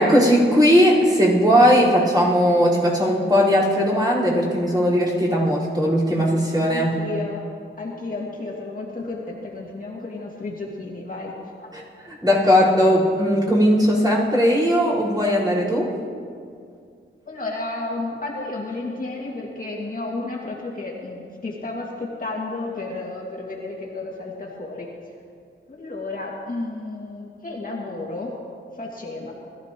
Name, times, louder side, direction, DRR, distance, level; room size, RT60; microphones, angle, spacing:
voice 1, 0.0-6.9 11.7-11.8 12.2-15.9, equal, 20° right, -8 dB, 4.4 m, -18 dB
voice 2, 6.6-7.4 7.8-11.4 17.3-24.9 25.7-28.3 28.7-29.3, left 2 dB, 40° left, -3 dB, 2.2 m, -32 dB
21.5 x 14.0 x 3.0 m, 2.2 s
wide cardioid pair, 105°, 21 cm